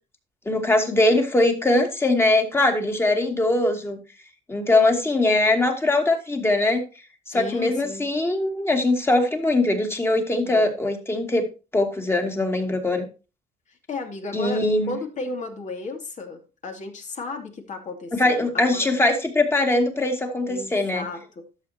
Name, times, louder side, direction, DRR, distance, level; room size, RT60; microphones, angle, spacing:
voice 1, 0.5-4.0 4.5-6.8 7.3-11.4 11.7-13.1 14.3-14.9 18.1-21.1, left 2 dB, 15° left, 4 dB, 2.4 m, -21 dB
voice 2, 7.3-8.1 10.5-10.7 13.9-18.8 20.5-21.5, left 3 dB, 45° left, 4 dB, 2.7 m, -34 dB
13.0 x 7.3 x 2.9 m, 0.31 s
cardioid pair, 110°, 17 cm